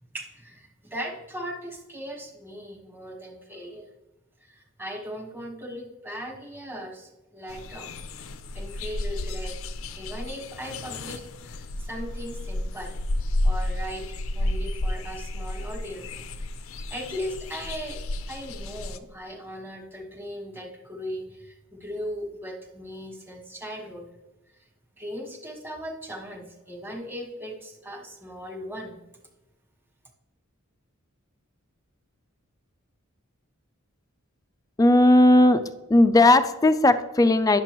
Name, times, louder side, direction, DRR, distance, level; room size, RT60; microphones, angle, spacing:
voice 1, 0.1-3.9 4.4-7.9 8.5-9.6 9.9-13.0 13.4-14.1 14.3-16.2 16.6-18.0 18.3-24.1 24.5-24.6 25.0-29.0, equal, 10° right, 1 dB, 1.4 m, -38 dB
sound 1, 7.5-19.0, left 1 dB, 70° left, 0.5 m, -32 dB
voice 2, 34.8-35.6 35.9-37.6, left 1 dB, 15° left, 9 dB, 0.4 m, -17 dB
10.0 x 6.7 x 3.0 m, 1.0 s
head